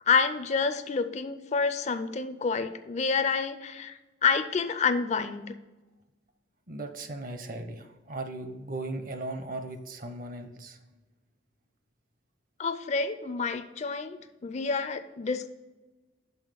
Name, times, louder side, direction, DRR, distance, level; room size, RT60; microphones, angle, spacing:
voice 1, 0.1-5.5 12.6-15.5, left 5 dB, 35° left, 11 dB, 0.4 m, -28 dB
voice 2, 6.7-10.8, right 2 dB, 45° right, 8 dB, 0.7 m, -37 dB
5.8 x 5.6 x 5.0 m, 1.2 s
head